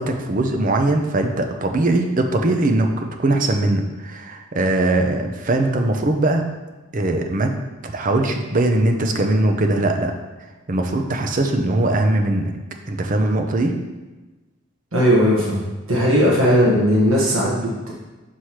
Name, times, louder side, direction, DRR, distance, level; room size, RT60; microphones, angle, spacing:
voice 1, 0.0-6.5 6.9-7.5 7.8-10.1 10.7-12.5 12.9-13.7, right 2 dB, 40° right, 4 dB, 0.6 m, -20 dB
voice 2, 14.9-17.9, equal, 75° right, -5 dB, 1.4 m, -17 dB
6.3 x 3.2 x 5.7 m, 1.2 s
head